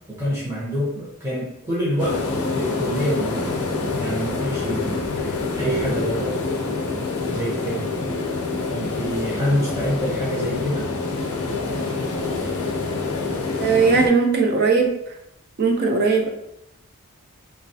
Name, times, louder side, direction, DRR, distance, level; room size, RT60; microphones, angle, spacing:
voice 1, 0.2-2.2 2.5-3.4 4.0-5.0 5.5-6.4 7.3-7.9 8.7-10.9, equal, 10° right, -7 dB, 0.8 m, -26 dB
sound 1, 2.0-14.1, left 3 dB, 80° left, 0.5 m, -26 dB
voice 2, 13.6-14.9 15.6-16.3, right 4 dB, 45° right, 2 dB, 0.4 m, -18 dB
2.9 x 2.3 x 2.7 m, 0.80 s
head